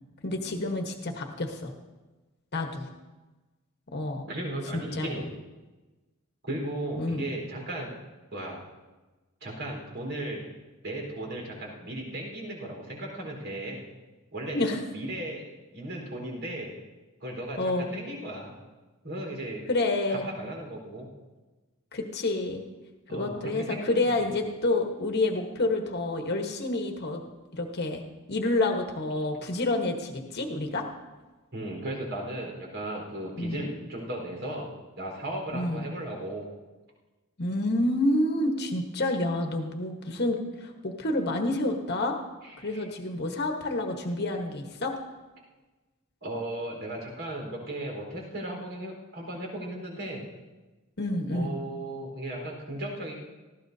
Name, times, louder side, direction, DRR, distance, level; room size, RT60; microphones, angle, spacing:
voice 1, 0.2-1.7 2.5-2.9 3.9-4.2 4.7-5.2 7.0-7.3 14.5-14.8 17.6-17.9 19.7-20.3 21.9-22.6 23.1-27.2 27.5-28.0 28.3-30.9 33.4-33.6 35.5-35.8 37.4-42.1 42.6-45.0 51.0-51.5, left 2 dB, 50° left, 3 dB, 1.3 m, -28 dB
voice 2, 4.3-5.3 6.4-8.0 8.3-8.6 9.4-10.5 10.8-13.8 14.3-14.6 14.9-15.4 15.7-16.7 17.2-18.6 19.0-19.6 20.1-21.1 23.1-24.1 31.5-34.7 35.0-36.5 42.4-42.9 46.2-50.2 51.3-53.1, right 1 dB, 60° right, -1 dB, 4.3 m, -36 dB
18.5 x 15.0 x 2.8 m, 1.2 s
head